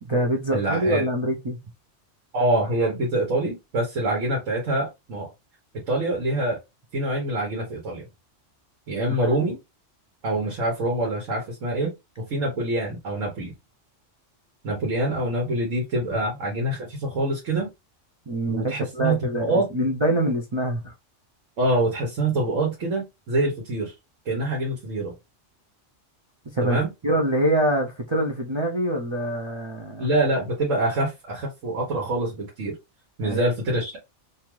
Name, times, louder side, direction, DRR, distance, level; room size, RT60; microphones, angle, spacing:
voice 1, 0.0-1.6 9.1-9.3 18.3-20.9 26.5-30.1 33.2-33.4, right 1 dB, 50° right, 0.3 m, -25 dB
voice 2, 0.5-1.0 2.3-5.3 5.9-6.6 6.9-8.0 8.9-9.6 10.2-11.9 12.2-13.5 14.6-17.7 18.5-19.6 21.6-23.9 24.3-25.1 26.6-26.9 30.0-32.7 33.2-34.0, right 1 dB, 90° right, 1.3 m, -25 dB
2.8 x 2.4 x 3.0 m
omnidirectional pair, 1.3 m